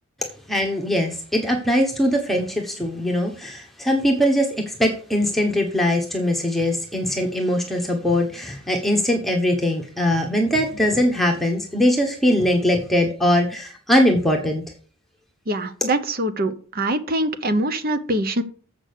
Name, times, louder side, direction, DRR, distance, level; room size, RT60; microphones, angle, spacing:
voice 1, 0.5-14.6, equal, ahead, 0 dB, 1.1 m, -21 dB
voice 2, 15.5-18.4, right 1 dB, 45° right, 9 dB, 0.9 m, -23 dB
7.6 x 6.2 x 6.7 m, 0.42 s
head